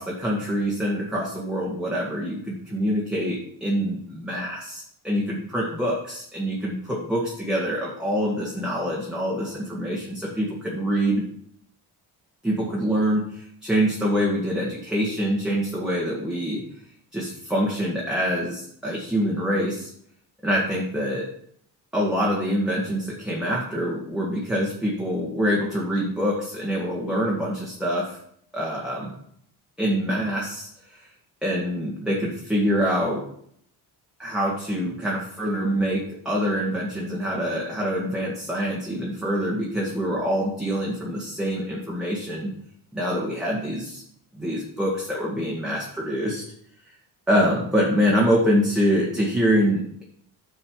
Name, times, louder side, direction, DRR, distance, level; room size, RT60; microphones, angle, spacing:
voice 1, 0.0-11.2 12.4-16.6 17.1-19.9 20.4-21.3 21.9-28.2 28.5-29.2 29.8-31.1 31.4-33.3 34.2-42.5 42.9-44.0 44.3-46.4 47.3-50.0, equal, ahead, -5 dB, 1.9 m, -25 dB
9.9 x 6.7 x 4.8 m, 0.68 s
cardioid pair, 130°, 41 cm